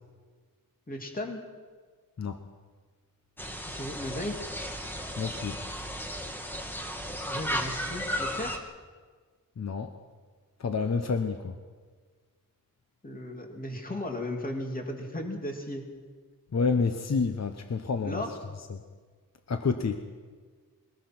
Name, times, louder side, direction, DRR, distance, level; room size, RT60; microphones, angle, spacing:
voice 1, 0.9-1.4 3.7-4.5 7.2-8.6 13.0-15.8 18.0-18.3, left 1 dB, 25° left, 2 dB, 2.8 m, -35 dB
sound 1, 3.4-8.6, equal, 5° left, 1.7 m, -35 dB
voice 2, 5.2-5.6 9.6-9.9 10.6-11.5 16.5-18.2 18.7-18.8 19.5-20.0, left 5 dB, 50° left, 7 dB, 1.1 m, -29 dB
22.0 x 20.0 x 6.1 m, 1.5 s
wide cardioid pair, 155°, 35 cm